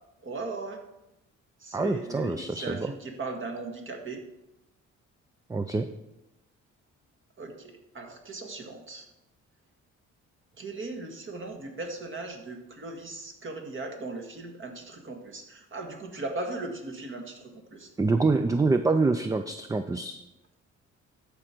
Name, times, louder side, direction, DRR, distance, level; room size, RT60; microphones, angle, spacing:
voice 1, 0.2-0.8 1.6-4.2 7.4-9.1 10.6-17.9, right 3 dB, 40° right, 4 dB, 1.8 m, -38 dB
voice 2, 1.7-2.9 5.5-5.9 18.0-20.2, right 3 dB, 10° right, 9 dB, 0.4 m, -26 dB
12.5 x 5.0 x 4.5 m, 0.92 s
cardioid pair, 90°, 30 cm